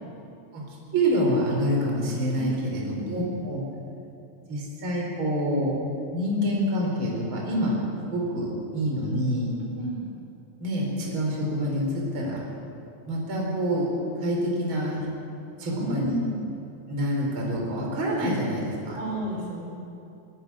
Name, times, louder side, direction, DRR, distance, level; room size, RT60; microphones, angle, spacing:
voice 1, 0.9-3.6 4.5-5.8 6.1-7.8 8.1-9.6 10.6-12.4 13.1-13.9 14.2-15.0 15.6-16.1 16.9-19.0, equal, 35° right, -2 dB, 4.9 m, -26 dB
voice 2, 2.3-3.0 9.8-10.0 15.7-16.4 18.9-19.6, right 1 dB, 85° right, -3 dB, 6.7 m, -32 dB
24.5 x 11.5 x 9.8 m, 2.7 s
omnidirectional pair, 4.1 m